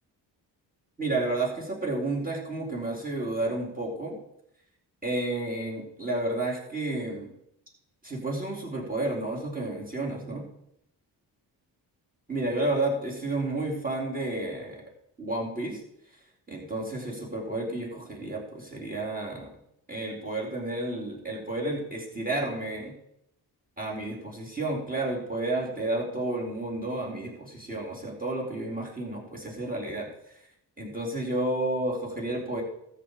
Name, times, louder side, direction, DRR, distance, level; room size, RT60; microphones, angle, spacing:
voice 1, 1.0-4.1 5.0-7.3 8.0-10.4 12.3-14.8 15.2-15.8 16.5-19.6 19.9-22.9 23.8-30.1 30.8-32.6, right 2 dB, 20° right, -2 dB, 4.3 m, -31 dB
13.5 x 8.6 x 5.1 m, 0.77 s
cardioid pair, 80°, 42 cm